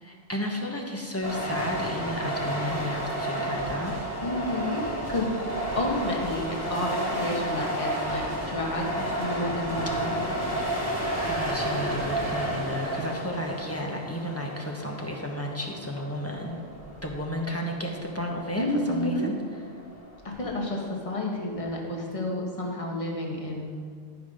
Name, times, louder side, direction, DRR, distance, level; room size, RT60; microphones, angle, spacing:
voice 1, 0.0-4.0 11.2-16.6 17.0-19.3, equal, 15° left, 0 dB, 1.0 m, -32 dB
sound 1, 1.2-20.8, right 1 dB, 30° right, 1.8 m, -32 dB
voice 2, 4.2-5.4 5.8-8.9 9.2-10.2 18.6-19.3 20.2-23.8, left 1 dB, 30° left, -1 dB, 1.4 m, -30 dB
11.5 x 6.1 x 5.0 m, 2.1 s
omnidirectional pair, 1.2 m